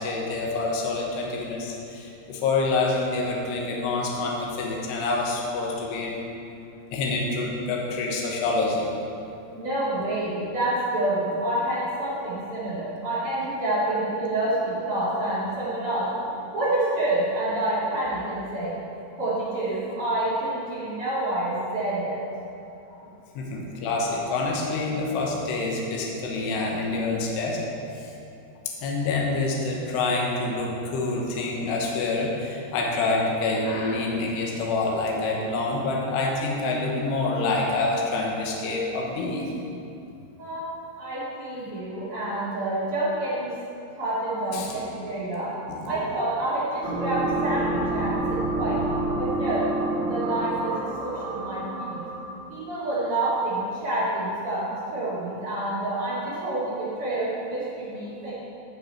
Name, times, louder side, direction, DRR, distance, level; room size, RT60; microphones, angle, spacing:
voice 1, 0.0-6.2 6.9-8.8 23.4-27.6 28.0-28.1 28.8-39.5 44.5-44.7 45.7-45.9, left 3 dB, 80° left, -2 dB, 3.2 m, -27 dB
voice 2, 9.5-18.7 19.2-22.2 22.9-23.1 40.4-40.7 41.0-43.5 44.0-45.5 45.8-49.6 50.0-52.0 52.5-58.3, right 1 dB, 40° right, -10 dB, 2.3 m, -28 dB
sound 1, 46.8-52.5, right 2 dB, 80° right, 3.9 m, -28 dB
13.5 x 6.6 x 4.4 m, 2.7 s
omnidirectional pair, 5.0 m